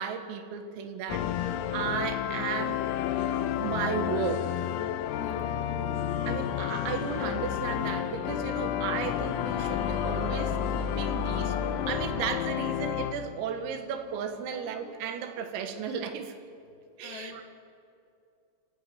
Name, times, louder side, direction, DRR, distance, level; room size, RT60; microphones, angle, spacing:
voice 1, 0.0-2.8 3.6-4.6 6.3-16.3 17.0-17.5, right 7 dB, 85° right, 6 dB, 4.2 m, -34 dB
sound 1, 1.1-13.1, left 10 dB, 90° left, 3.6 m, -30 dB
sound 2, 4.4-16.1, left 2 dB, 10° left, 7.2 m, -54 dB
voice 2, 5.1-5.5 11.3-11.4 14.5-14.6 17.0-17.5, left 6 dB, 65° left, 3 dB, 3.9 m, -46 dB
28.5 x 15.5 x 7.0 m, 2.5 s
omnidirectional pair, 5.9 m